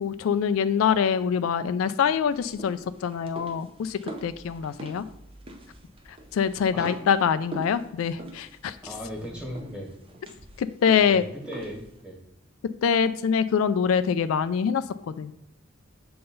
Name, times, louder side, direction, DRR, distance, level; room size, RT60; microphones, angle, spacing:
voice 1, 0.0-5.0 6.3-8.8 10.6-11.2 12.8-15.3, left 7 dB, 85° left, 12 dB, 0.3 m, -24 dB
sound 1, 2.3-12.0, right 1 dB, 25° right, 0.7 m, -44 dB
voice 2, 8.8-9.9 11.0-12.2, equal, 5° right, -1 dB, 1.5 m, -37 dB
6.8 x 3.8 x 3.8 m, 0.85 s
head